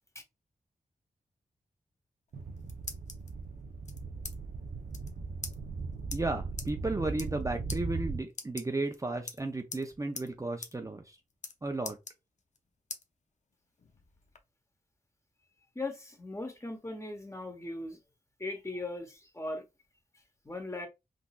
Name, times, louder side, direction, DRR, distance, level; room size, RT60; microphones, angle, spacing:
sound 1, 2.3-3.3 3.9-4.4 4.6-4.7 4.9-5.1 5.4-5.6 6.1-6.2 6.6-6.7 7.1-7.4 7.7-7.8 8.3-9.0 9.3-9.9 10.2-10.3 10.6-10.7 11.0-11.5 11.8-12.6 12.9-13.0 13.5-14.4, left 4 dB, 55° left, 0.7 m, -42 dB
sound 2, 2.3-8.2, right 4 dB, 70° right, 0.6 m, -38 dB
voice 1, 6.1-11.2 11.6-12.0, right 2 dB, 20° right, 0.6 m, -34 dB
voice 2, 15.7-18.0 18.4-19.6 20.4-20.9, left 2 dB, 20° left, 1.0 m, -38 dB
3.8 x 2.5 x 2.3 m
cardioid pair, 45°, 15 cm